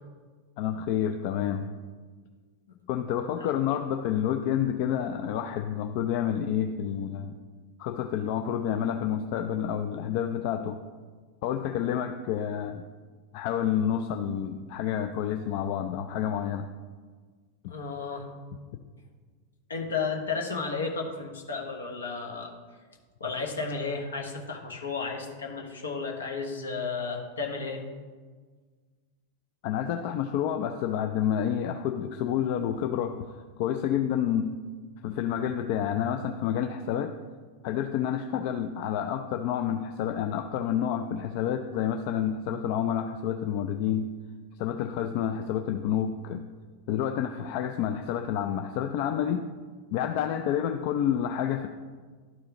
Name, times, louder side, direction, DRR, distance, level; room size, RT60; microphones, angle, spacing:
voice 1, 0.6-1.7 2.9-7.4 7.8-10.8 11.4-12.8 13.3-16.6 17.6-17.7 29.6-34.5 35.0-37.2 37.6-44.1 44.6-46.4 46.9-49.5 49.9-51.7, left 9 dB, 45° left, 7 dB, 0.4 m, -29 dB
voice 2, 17.7-18.3 19.7-22.5 23.2-27.8, left 4 dB, 70° left, 2 dB, 1.1 m, -33 dB
12.0 x 4.8 x 2.9 m, 1.5 s
figure-of-eight pair, 90°, 0 cm